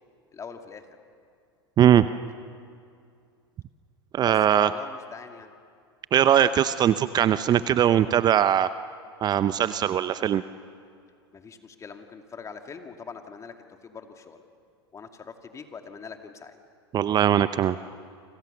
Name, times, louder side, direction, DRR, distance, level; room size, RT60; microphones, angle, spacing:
voice 1, 0.3-1.0 4.2-5.5 11.3-14.4 14.9-16.6, left 5 dB, 20° left, 5 dB, 2.4 m, -42 dB
voice 2, 1.8-2.1 4.1-4.7 6.1-8.7 9.2-10.4 16.9-17.8, right 10 dB, 30° right, 14 dB, 0.7 m, -20 dB
29.5 x 25.5 x 6.9 m, 2.3 s
hypercardioid pair, 95°, 14 cm